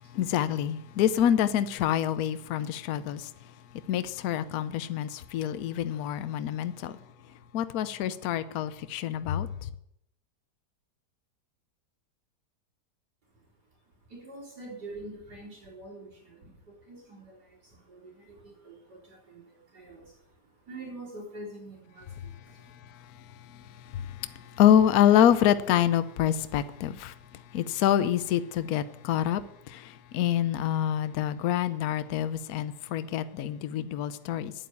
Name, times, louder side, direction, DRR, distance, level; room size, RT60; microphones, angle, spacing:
voice 1, 0.1-3.3 3.9-6.9 7.5-9.5 24.6-27.1 27.5-29.4 29.7-29.8 30.1-34.5, left 10 dB, 65° left, 1.1 m, -26 dB
voice 2, 14.1-22.8, right 2 dB, 70° right, 4.6 m, -46 dB
9.5 x 9.2 x 8.1 m
omnidirectional pair, 1.8 m